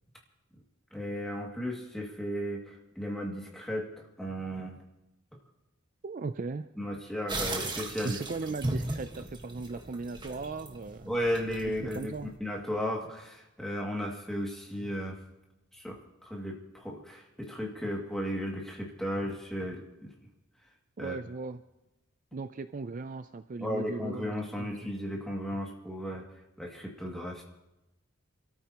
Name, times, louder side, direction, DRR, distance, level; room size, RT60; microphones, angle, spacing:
voice 1, 0.9-3.9 4.2-4.8 6.8-8.2 11.1-12.1 12.4-15.2 15.7-20.1 21.0-21.2 23.6-26.2 26.6-27.4, equal, ahead, -2 dB, 2.2 m, -35 dB
voice 2, 6.0-6.7 8.0-11.1 11.9-12.3 21.0-21.6 22.3-24.9, right 3 dB, 40° right, 10 dB, 0.4 m, -37 dB
sound 1, 7.3-12.4, right 2 dB, 20° right, 1.4 m, -37 dB
28.0 x 13.5 x 2.9 m, 0.97 s
head